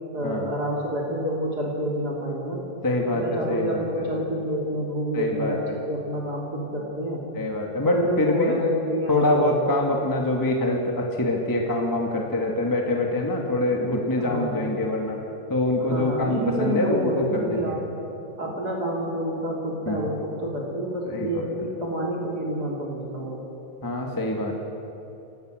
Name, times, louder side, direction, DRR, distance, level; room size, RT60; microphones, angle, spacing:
voice 1, 0.1-2.6 3.1-7.2 7.8-9.7 14.2-14.7 15.9-17.8 18.4-23.4, equal, 30° right, -2 dB, 3.5 m, -28 dB
voice 2, 2.8-4.1 5.1-5.8 7.3-8.6 9.1-15.2 15.5-17.8 19.9-20.0 21.1-21.4 23.8-24.6, left 2 dB, 10° left, 0 dB, 1.8 m, -25 dB
29.5 x 18.0 x 6.6 m, 2.8 s
omnidirectional pair, 3.5 m